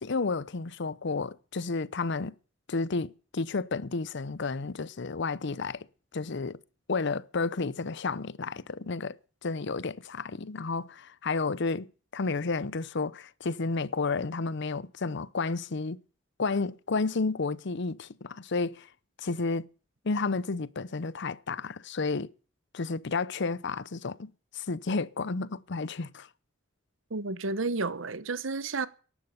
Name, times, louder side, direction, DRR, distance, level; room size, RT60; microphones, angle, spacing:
voice 1, 0.0-2.3 2.7-5.9 6.1-6.6 6.9-9.2 9.4-11.9 12.1-16.0 16.4-18.9 19.2-19.7 20.0-22.3 22.7-26.3, left 4 dB, 60° left, 0.7 m, -31 dB
voice 2, 27.1-28.9, right 3 dB, 75° right, 1.1 m, -31 dB
14.5 x 11.5 x 6.9 m
head